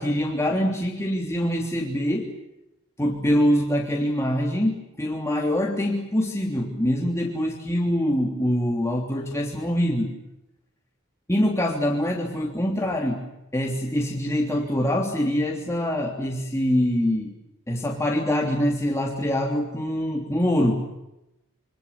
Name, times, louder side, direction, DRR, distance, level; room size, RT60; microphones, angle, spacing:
voice 1, 0.0-2.3 3.0-10.1 11.3-13.2 13.5-17.3 17.7-20.9, equal, 15° left, -1 dB, 3.3 m, -24 dB
27.5 x 25.5 x 7.2 m, 0.93 s
head